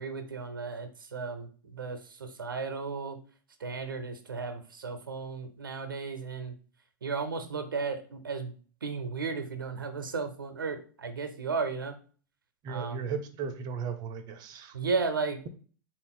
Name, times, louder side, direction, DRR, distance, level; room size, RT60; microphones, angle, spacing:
voice 1, 0.0-3.2 3.6-6.5 7.0-8.5 8.8-12.0 12.7-13.1 14.7-15.5, right 4 dB, 90° right, 9 dB, 0.6 m, -34 dB
voice 2, 12.6-14.8, right 6 dB, 40° right, 9 dB, 0.5 m, -36 dB
4.0 x 2.5 x 3.7 m, 0.41 s
hypercardioid pair, 100°, 11 cm